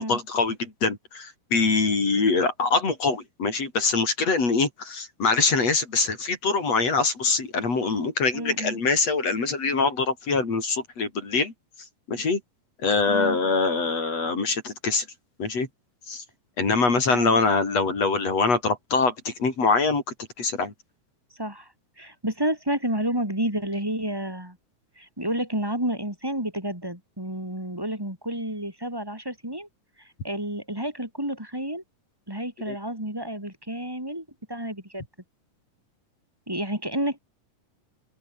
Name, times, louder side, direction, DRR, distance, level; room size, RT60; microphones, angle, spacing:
voice 1, 0.0-11.5 12.1-12.4 12.8-15.0 15.4-15.7 16.1-16.2 16.6-20.0 20.4-20.7 32.7-32.8, left 4 dB, 50° left, 6.2 m, -24 dB
voice 2, 8.3-8.8 13.0-13.4 16.7-16.8 17.1-17.4 21.3-24.6 25.0-29.7 30.0-31.8 32.3-35.0 36.5-37.2, right 1 dB, 5° right, 4.7 m, -30 dB
open air
omnidirectional pair, 3.8 m